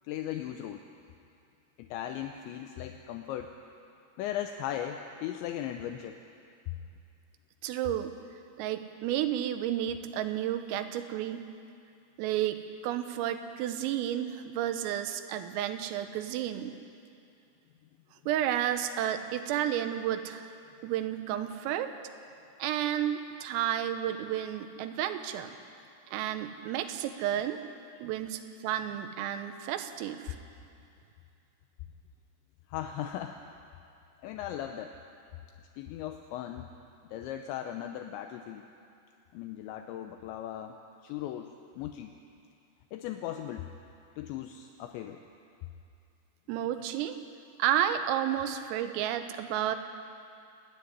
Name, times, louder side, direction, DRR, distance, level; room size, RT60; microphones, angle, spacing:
voice 1, 0.0-0.8 1.8-3.6 4.2-6.2 6.7-6.8 32.7-33.4 34.2-34.9 35.8-36.7 37.1-38.6 39.3-40.8 41.0-42.1 42.9-43.7 44.2-45.2, left 11 dB, 80° left, 5 dB, 2.7 m, -37 dB
voice 2, 7.6-8.1 8.6-11.5 12.2-16.7 18.3-20.5 20.8-21.9 22.6-25.6 26.1-27.6 28.0-30.4 46.5-47.2 47.6-49.8, right 11 dB, 85° right, 8 dB, 3.6 m, -31 dB
27.0 x 10.0 x 9.8 m, 2.5 s
omnidirectional pair, 5.9 m